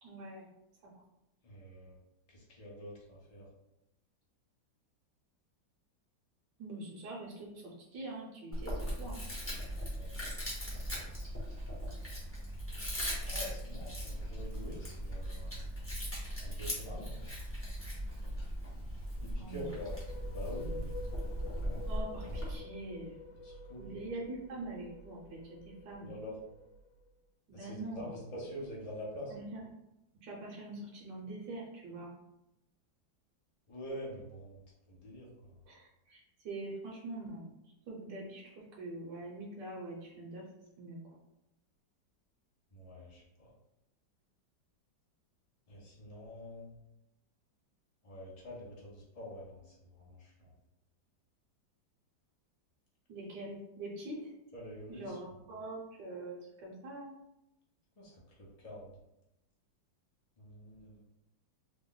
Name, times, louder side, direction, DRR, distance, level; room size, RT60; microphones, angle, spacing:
voice 1, 0.0-0.5 0.8-0.9 6.6-9.2 19.4-19.7 21.9-23.2 23.8-26.1 27.5-28.2 29.3-29.7 30.2-32.1 35.7-37.5 37.9-40.4 40.8-41.0 53.1-54.3 54.9-56.4 56.6-57.2, right 2 dB, 75° right, -4 dB, 1.4 m, -44 dB
voice 2, 1.4-2.0 2.3-3.5 9.9-10.2 13.2-15.6 16.4-17.2 19.2-20.0 20.3-21.2 23.4-24.0 26.0-26.3 27.5-29.3 33.7-34.6 34.9-35.3 42.7-43.5 45.7-46.7 48.0-50.5 54.5-55.2 58.0-58.9 60.4-61.0, equal, 50° left, -4 dB, 0.4 m, -46 dB
Chewing mastication, 8.5-22.6, equal, 10° left, 0.6 m, -39 dB
sound 1, 19.4-27.1, left 2 dB, 80° left, 1.3 m, -49 dB
3.3 x 2.2 x 3.8 m, 0.87 s
omnidirectional pair, 2.0 m